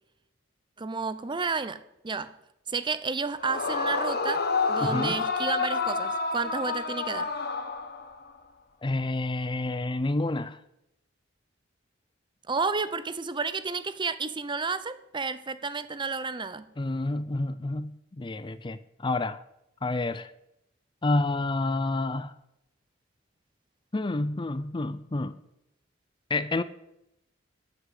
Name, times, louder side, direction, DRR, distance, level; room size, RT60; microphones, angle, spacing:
voice 1, 0.8-2.3 2.7-7.3 12.5-16.6, right 4 dB, 25° right, 0.7 m, -31 dB
Yell / Screaming, 3.4-8.3, left 4 dB, 55° left, 1.5 m, -29 dB
voice 2, 4.8-5.2 8.8-10.6 16.8-19.4 19.8-20.3 21.0-22.3 23.9-25.4 26.3-26.6, left 2 dB, 25° left, 0.5 m, -29 dB
14.0 x 8.1 x 8.2 m
head